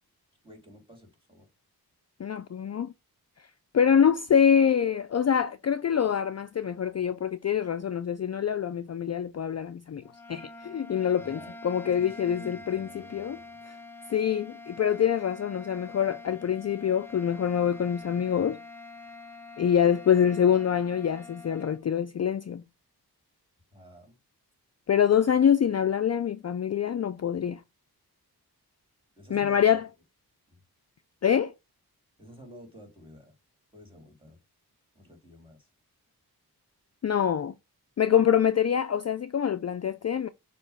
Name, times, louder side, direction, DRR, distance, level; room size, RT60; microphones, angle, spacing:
voice 1, 0.4-1.5 11.2-11.6 11.9-13.6 23.7-24.1 29.2-29.8 30.5-30.6 32.2-33.3 33.7-34.4 34.9-35.6, equal, 15° right, 2.9 m, -50 dB
voice 2, 2.2-2.9 3.7-10.0 10.3-13.4 14.1-18.6 19.6-22.6 24.9-27.6 29.3-29.9 31.2-31.5 37.0-37.5 38.0-40.3, left 8 dB, 45° left, 0.4 m, -25 dB
sound 1, 10.0-21.8, left 3 dB, 5° left, 0.8 m, -46 dB
6.8 x 2.9 x 5.6 m
wide cardioid pair, 95°, 39 cm